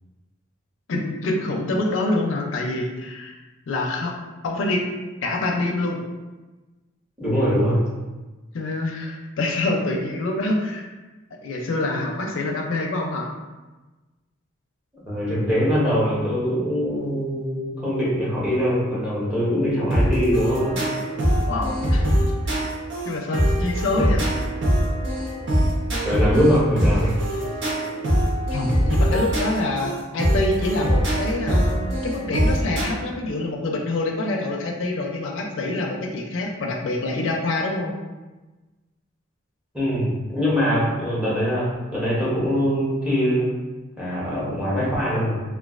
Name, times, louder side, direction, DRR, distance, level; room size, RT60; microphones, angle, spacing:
voice 1, 0.9-3.3 3.7-4.1 4.4-4.8 5.2-6.0 8.5-10.9 11.4-13.3 21.5-22.1 22.5-22.6 23.1-24.4 28.5-37.9, left 2 dB, 70° left, 0 dB, 0.4 m, -26 dB
voice 2, 7.2-7.9 15.0-20.8 26.0-27.2 39.7-43.5 44.0-45.4, equal, 5° right, -8 dB, 0.8 m, -22 dB
sound 1, 19.9-32.9, equal, 60° right, 0.7 m, -22 dB
3.1 x 2.3 x 2.4 m, 1.2 s
head